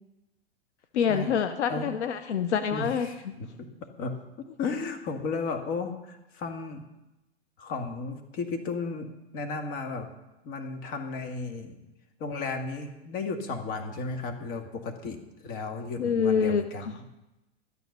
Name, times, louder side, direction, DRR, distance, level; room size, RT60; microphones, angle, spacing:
voice 1, 0.9-3.3 16.0-17.0, left 7 dB, 85° left, 10 dB, 0.9 m, -26 dB
voice 2, 2.7-3.7 4.0-4.2 4.6-6.8 7.6-9.1 9.3-10.1 10.4-11.8 12.2-16.9, left 4 dB, 40° left, 5 dB, 2.0 m, -34 dB
12.5 x 9.5 x 6.6 m, 0.99 s
hypercardioid pair, 125°, 33 cm